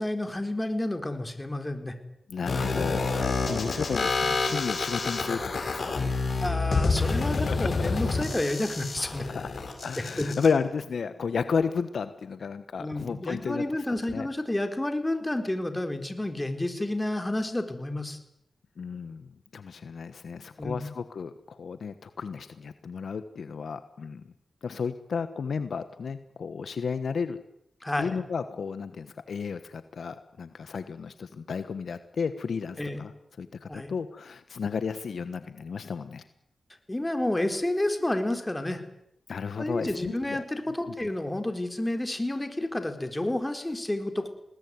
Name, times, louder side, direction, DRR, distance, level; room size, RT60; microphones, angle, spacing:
voice 1, 0.0-1.9 6.4-9.2 10.2-10.3 12.8-18.2 20.6-20.9 27.8-28.2 32.8-33.0 33.7-33.9 36.9-38.8 39.6-44.3, left 1 dB, 15° left, 7 dB, 4.1 m, -30 dB
voice 2, 2.3-6.0 6.3-6.4 7.3-8.0 9.3-9.5 9.8-13.9 14.1-14.3 18.8-24.2 24.6-27.4 28.0-33.1 33.4-36.2 39.3-40.4 40.9-41.0, left 5 dB, 75° left, 11 dB, 1.2 m, -33 dB
sound 1, 2.5-10.5, left 3 dB, 60° left, 6.7 m, -28 dB
21.5 x 19.0 x 9.6 m, 0.77 s
cardioid pair, 60°, 0 cm